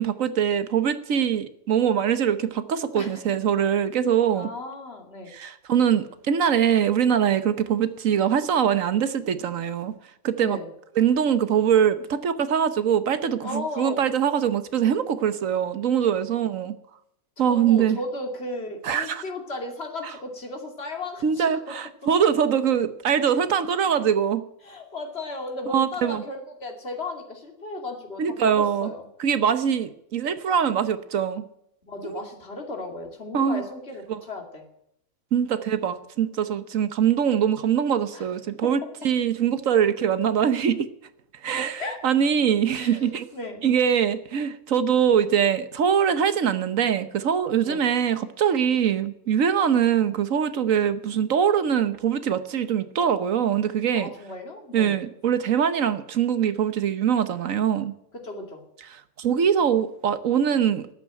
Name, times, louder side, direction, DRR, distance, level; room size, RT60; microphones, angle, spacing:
voice 1, 0.0-4.5 5.3-9.9 10.2-10.6 11.0-16.7 17.4-18.0 18.8-19.2 21.2-24.4 25.7-26.2 28.2-28.9 29.2-31.4 32.0-32.2 33.3-33.6 34.1-34.2 35.3-40.9 41.4-43.3 43.6-54.1 54.7-57.9 58.9-60.9, right 8 dB, 70° right, 1.3 m, -23 dB
voice 2, 4.3-5.3 10.4-10.7 13.4-14.0 17.4-21.5 24.6-29.1 31.8-34.7 38.1-38.3 41.8-42.0 42.7-43.6 47.6-47.9 53.9-55.0 58.2-58.6, left 2 dB, 50° left, 2.8 m, -35 dB
12.5 x 9.0 x 9.1 m
omnidirectional pair, 1.4 m